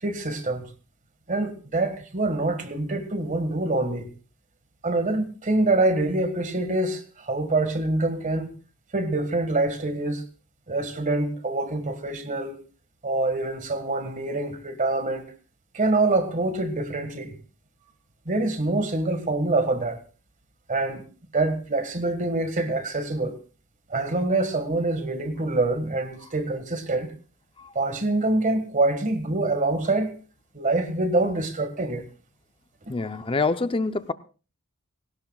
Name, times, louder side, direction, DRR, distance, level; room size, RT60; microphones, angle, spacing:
voice 1, 0.0-0.7 1.3-4.1 4.8-8.5 8.9-10.2 10.7-12.6 13.0-15.2 15.7-17.3 18.2-20.0 20.7-21.0 21.3-23.4 23.9-27.1 27.7-30.1 30.5-32.0, right 2 dB, 35° right, 1.7 m, -25 dB
voice 2, 32.9-34.1, left 3 dB, 25° left, 0.6 m, -26 dB
20.5 x 18.0 x 2.4 m
head